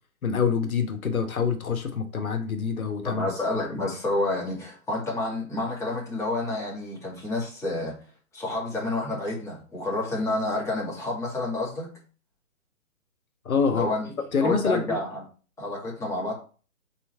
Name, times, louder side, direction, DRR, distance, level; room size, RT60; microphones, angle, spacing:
voice 1, 0.2-3.3 13.4-13.9 14.3-14.8, left 5 dB, 70° left, 1.3 m, -26 dB
voice 2, 3.0-7.9 8.3-11.9 13.7-14.1 14.4-15.2 15.6-16.3, left 2 dB, 5° left, 2.1 m, -29 dB
4.3 x 4.3 x 5.6 m
hypercardioid pair, 140°, 43 cm